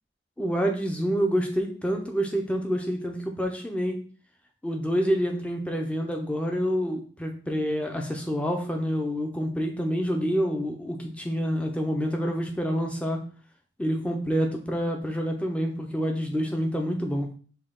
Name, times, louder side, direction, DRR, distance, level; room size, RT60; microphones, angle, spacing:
voice 1, 0.4-4.0 4.6-13.2 13.8-17.3, equal, 5° left, 3 dB, 0.5 m, -27 dB
5.4 x 2.3 x 3.7 m, 0.42 s
head